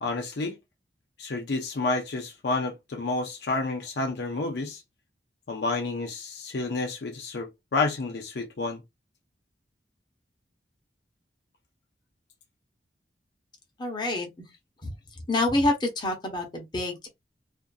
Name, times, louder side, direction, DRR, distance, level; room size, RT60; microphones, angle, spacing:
voice 1, 0.0-0.6 1.2-4.8 5.5-8.8, left 3 dB, 65° left, 0.5 m, -30 dB
voice 2, 13.8-14.4 14.8-14.9 15.3-17.1, left 2 dB, 25° left, 0.8 m, -27 dB
2.5 x 2.4 x 2.2 m
head